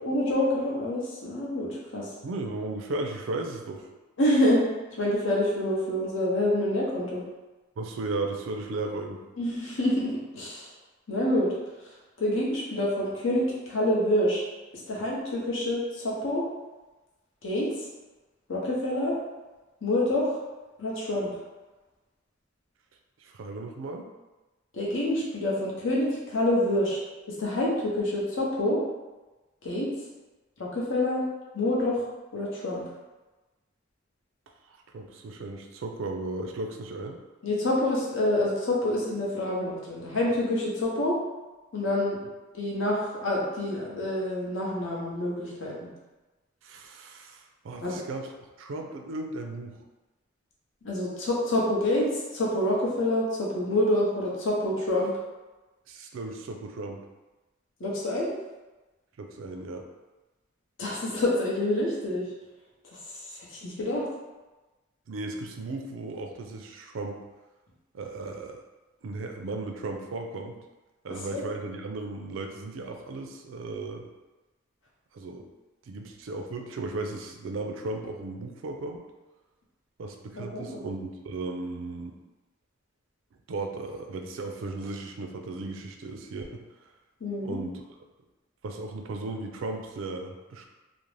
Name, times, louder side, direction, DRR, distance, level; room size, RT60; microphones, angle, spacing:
voice 1, 0.0-2.1 4.2-4.6 5.0-7.2 9.4-10.7 11.1-11.5 12.2-14.4 14.9-16.4 17.4-17.7 18.5-19.2 19.8-20.4 20.8-21.3 24.7-27.0 27.4-28.8 29.6-29.9 30.6-31.2 31.5-32.1 32.3-32.8 37.4-41.2 41.7-42.2 42.5-45.9 47.8-48.0 50.8-55.1 57.8-58.3 60.8-62.3 63.1-64.0 71.3-71.4 80.4-80.8 87.2-87.6, left 1 dB, 75° left, -4 dB, 0.7 m, -27 dB
voice 2, 2.2-3.9 7.8-9.2 23.2-24.1 34.7-37.2 46.6-48.3 48.6-49.8 55.9-57.0 59.2-59.9 65.1-67.2 67.9-68.6 69.0-70.6 71.0-74.1 75.1-75.4 75.9-79.0 80.0-82.2 83.5-86.6 87.4-87.8 88.6-90.7, right 2 dB, 75° right, 3 dB, 0.4 m, -35 dB
2.5 x 2.0 x 3.1 m, 1.1 s
head